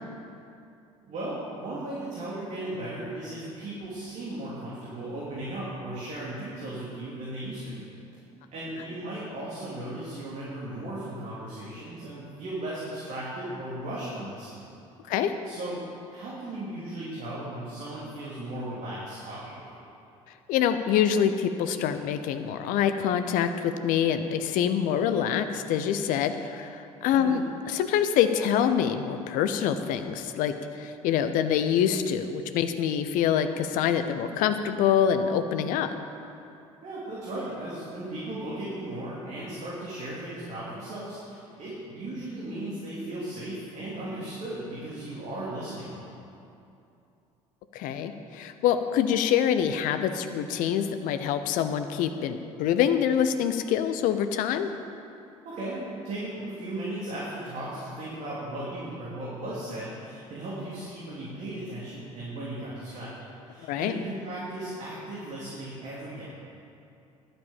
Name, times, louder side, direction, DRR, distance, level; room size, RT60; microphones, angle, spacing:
voice 1, 1.0-7.9 8.5-14.6 15.4-15.8 16.1-19.8 27.2-27.4 36.8-46.1 55.4-63.1 63.5-66.3, right 1 dB, 40° right, -8 dB, 3.1 m, -36 dB
voice 2, 20.5-27.4 27.7-35.9 47.7-54.7 63.7-64.0, left 9 dB, 50° left, 9 dB, 0.8 m, -25 dB
11.0 x 8.9 x 7.1 m, 2.7 s
figure-of-eight pair, 60°, 17 cm